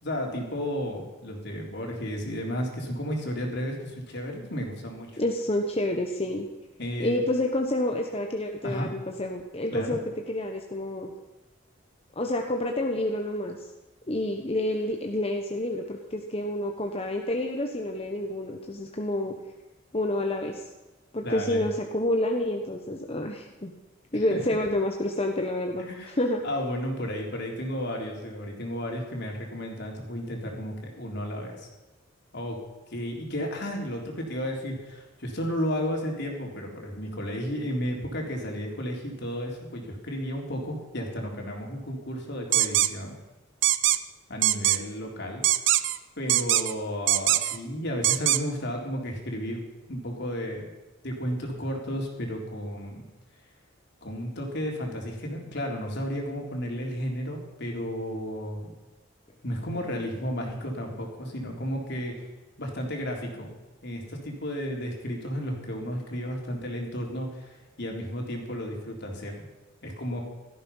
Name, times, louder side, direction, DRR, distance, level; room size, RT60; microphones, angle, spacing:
voice 1, 0.0-5.1 6.8-7.2 8.6-8.9 9.7-10.0 21.2-21.6 24.1-24.4 25.8-26.2 26.4-31.7 32.3-32.6 32.9-43.2 44.3-45.4 46.2-49.6 49.9-50.7 51.0-53.1 54.0-58.7 59.4-62.2 62.6-63.5 63.8-69.5 69.8-70.2, equal, 60° left, 0 dB, 3.9 m, -33 dB
voice 2, 5.2-6.5 7.0-11.1 12.2-13.6 14.1-19.3 19.9-20.6 21.1-23.7 24.1-26.4, left 1 dB, 30° left, 2 dB, 1.2 m, -28 dB
sound 1, 42.5-42.9 43.6-44.0 44.4-44.8 45.4-46.0 46.3-46.7 47.1-47.6 48.0-48.4, right 14 dB, 70° right, 0.7 m, -22 dB
17.0 x 14.0 x 5.7 m, 1.1 s
head